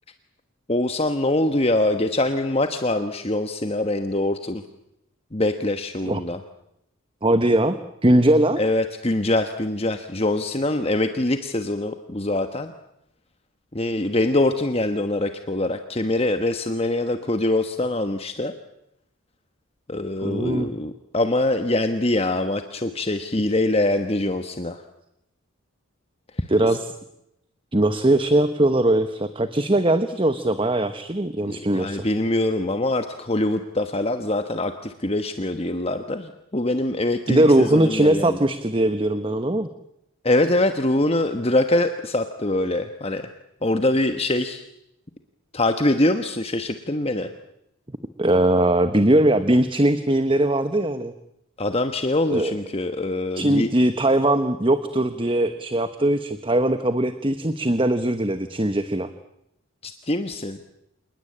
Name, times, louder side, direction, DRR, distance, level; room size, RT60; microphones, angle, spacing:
voice 1, 0.7-4.6 5.3-6.4 8.6-12.7 13.7-18.5 19.9-24.8 26.4-26.5 31.4-38.4 40.2-43.2 43.6-44.6 45.5-47.3 51.6-53.7 59.8-60.6, left 1 dB, 25° left, 8 dB, 1.2 m, -24 dB
voice 2, 7.2-7.8 8.0-8.6 20.2-20.7 26.5-26.8 27.7-32.0 37.3-39.7 48.2-51.1 52.3-52.6 53.3-59.1, right 1 dB, 25° right, 10 dB, 1.1 m, -20 dB
28.0 x 20.0 x 8.7 m, 0.81 s
head